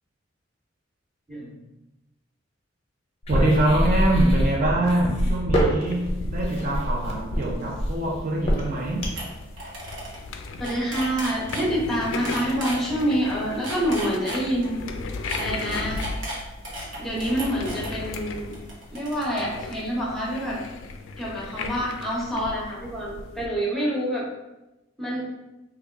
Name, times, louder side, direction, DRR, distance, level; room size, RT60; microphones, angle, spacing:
voice 1, 1.3-1.6 10.6-14.8 15.3-16.0 17.0-18.6 18.9-20.6 21.2-24.3 25.0-25.2, equal, ahead, -6 dB, 1.0 m, -27 dB
Alien Birth, 3.2-9.3, equal, 30° left, 0.6 m, -24 dB
voice 2, 3.3-9.1, right 1 dB, 45° right, -3 dB, 0.5 m, -24 dB
sound 1, 5.9-23.5, left 3 dB, 75° left, 0.3 m, -37 dB
sound 2, 8.8-8.9 9.2-9.3 9.5-10.2 10.5-11.7 12.3-12.8 13.5-14.7 15.2-17.9 18.5-19.4, right 1 dB, 70° right, 1.0 m, -35 dB
3.4 x 2.3 x 3.4 m, 0.99 s
head